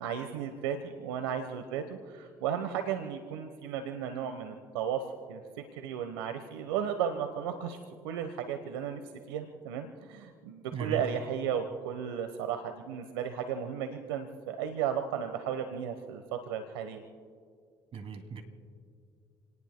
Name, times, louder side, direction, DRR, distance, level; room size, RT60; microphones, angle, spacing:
voice 1, 0.0-7.8 8.0-9.0 9.3-17.0, right 8 dB, 85° right, 7 dB, 1.0 m, -34 dB
voice 2, 10.7-11.0 17.9-18.4, right 6 dB, 50° right, 5 dB, 2.6 m, -37 dB
29.5 x 19.0 x 2.2 m, 2.2 s
hypercardioid pair, 60°, 12 cm